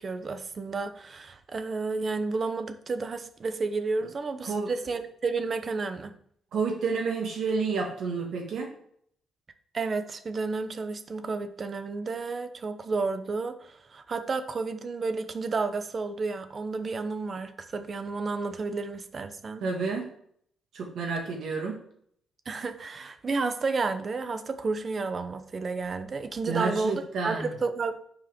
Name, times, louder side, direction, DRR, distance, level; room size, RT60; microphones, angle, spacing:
voice 1, 0.0-6.1 9.7-19.6 22.5-28.0, right 4 dB, 40° right, 9 dB, 0.9 m, -31 dB
voice 2, 6.5-8.7 19.6-20.1 20.7-21.8 26.5-27.5, right 4 dB, 70° right, 1 dB, 1.5 m, -30 dB
6.4 x 4.8 x 6.0 m, 0.66 s
cardioid pair, 90°, 0 cm